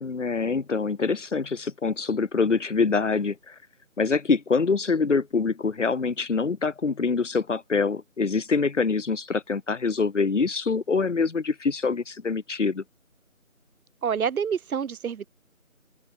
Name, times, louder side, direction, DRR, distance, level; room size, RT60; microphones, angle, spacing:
voice 1, 0.0-3.5 4.0-12.8, left 4 dB, 60° left, 0.5 m, -25 dB
voice 2, 14.0-15.3, right 7 dB, 85° right, 0.5 m, -27 dB
open air
figure-of-eight pair, 175°, 42 cm